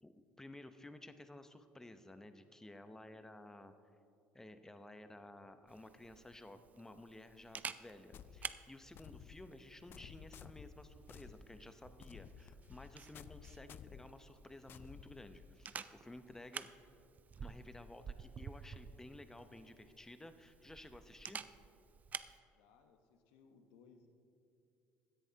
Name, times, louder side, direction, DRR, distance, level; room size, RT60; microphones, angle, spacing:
voice 1, 0.0-3.7 4.3-16.7 17.4-21.4, left 1 dB, 10° left, 9 dB, 0.7 m, -54 dB
Camera, 5.7-22.4, right 6 dB, 35° right, 0.4 m, -51 dB
sound 1, 8.1-15.8, left 8 dB, 50° left, 0.3 m, -55 dB
voice 2, 22.5-24.1, left 5 dB, 85° left, 6 dB, 1.0 m, -66 dB
16.0 x 10.5 x 2.8 m, 2.6 s
supercardioid pair, 85°, 5 cm